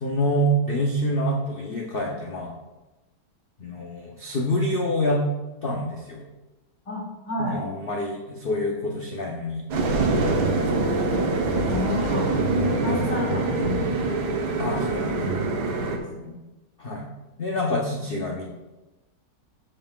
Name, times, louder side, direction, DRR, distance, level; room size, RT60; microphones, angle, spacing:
voice 1, 0.0-2.5 3.6-5.2 5.6-6.2 7.5-9.7 12.6-13.0 13.3-13.4 14.6-15.2 16.8-17.0 17.4-18.5, equal, 45° left, -1 dB, 0.8 m, -26 dB
voice 2, 6.8-7.6 11.7-12.3 12.8-14.1 15.2-15.5 15.8-16.3, left 2 dB, 80° left, -6 dB, 3.3 m, -32 dB
sound 1, 9.7-16.0, right 3 dB, 70° right, 1.5 m, -24 dB
14.0 x 5.5 x 2.4 m, 1.1 s
omnidirectional pair, 1.9 m